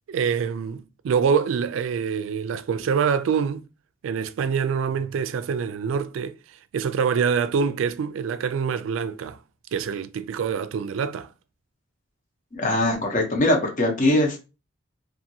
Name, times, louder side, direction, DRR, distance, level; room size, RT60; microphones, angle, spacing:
voice 1, 0.1-3.7 4.0-9.4 9.7-11.3, right 6 dB, 85° right, 0.3 m, -25 dB
voice 2, 12.5-14.5, left 1 dB, 40° left, 0.8 m, -22 dB
2.7 x 2.5 x 2.6 m
head